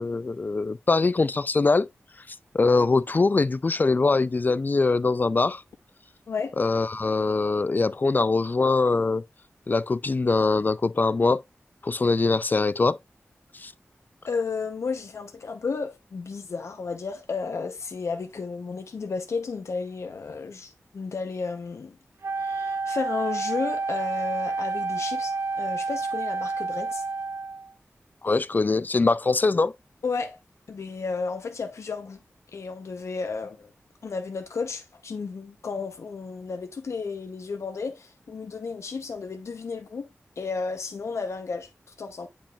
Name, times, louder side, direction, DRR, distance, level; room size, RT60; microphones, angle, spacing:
voice 1, 0.0-1.9 2.5-5.6 6.6-9.2 9.7-11.4 11.8-13.0 13.6-13.7 28.2-29.7, left 3 dB, 40° left, 0.3 m, -22 dB
voice 2, 6.3-6.6 14.3-22.0 22.4-27.0 30.0-30.4 30.7-32.2 32.5-33.7 34.0-40.1 40.4-41.7 42.0-42.3, left 4 dB, 85° left, 0.8 m, -33 dB
Wind instrument woodwind instrument, 22.2-27.7, right 3 dB, 70° right, 0.6 m, -29 dB
8.6 x 5.3 x 2.4 m
wide cardioid pair, 80°, 5 cm